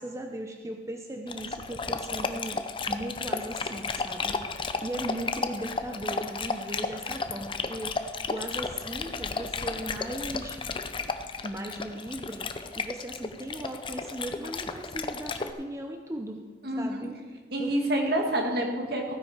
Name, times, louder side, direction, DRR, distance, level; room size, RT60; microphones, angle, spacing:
voice 1, 0.0-10.6 11.4-12.5 12.7-16.4 16.8-17.2 17.6-17.7, right 1 dB, 15° right, 3 dB, 0.7 m, -38 dB
Dog, 1.3-15.5, left 4 dB, 30° left, 0.6 m, -33 dB
voice 2, 16.6-17.1 17.5-19.1, right 1 dB, 60° right, 2 dB, 2.1 m, -28 dB
15.5 x 9.7 x 5.1 m, 1.4 s
head